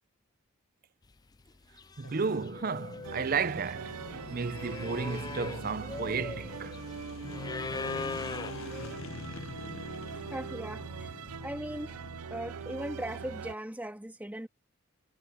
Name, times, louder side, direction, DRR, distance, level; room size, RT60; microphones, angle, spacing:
sound 1, 1.3-1.5 1.8-8.9, left 4 dB, 15° left, 0.3 m, -41 dB
sound 2, 2.0-13.4, left 4 dB, 60° left, 0.6 m, -46 dB
voice 1, 2.0-4.0 4.3-6.8, right 5 dB, 40° right, 0.5 m, -33 dB
sound 3, 3.0-13.5, right 6 dB, 90° right, 0.6 m, -42 dB
voice 2, 10.1-11.1 11.4-12.0 12.3-14.5, right 1 dB, 5° right, 2.5 m, -39 dB
head